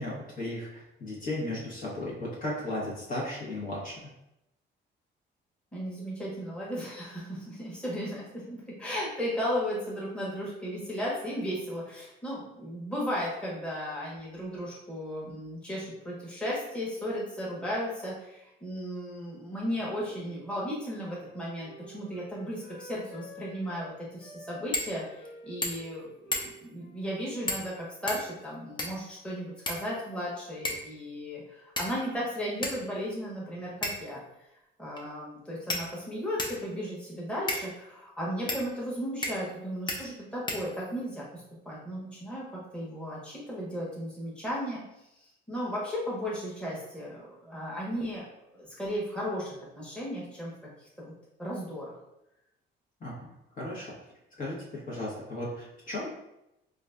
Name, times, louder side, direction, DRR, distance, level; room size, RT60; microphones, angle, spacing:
voice 1, 0.0-4.1 53.0-53.2 53.6-53.9 54.4-56.1, left 1 dB, 45° left, -6 dB, 1.2 m, -35 dB
voice 2, 5.7-34.2 34.8-42.5 42.7-44.8 45.2-48.3 48.5-50.5 50.8-51.1 51.4-51.9, equal, 5° left, -6 dB, 1.1 m, -35 dB
Wind instrument woodwind instrument, 20.0-23.9 24.2-27.7 28.0-28.6, left 1 dB, 90° left, 0.6 m, -51 dB
sound 1, 24.7-24.9 25.3-25.4 25.6-25.9 26.3-26.7 27.5-27.7 28.1-29.1 29.7-30.2 30.7-30.9 31.8-32.2 32.6-32.8 33.8-34.2 35.0-35.1 35.7-36.6 37.5-37.7 38.5-38.6 39.2-39.6 39.9-40.0 40.5-41.0, left 1 dB, 25° left, 0.6 m, -34 dB
3.8 x 2.5 x 2.4 m, 0.87 s
cardioid pair, 90°, 20 cm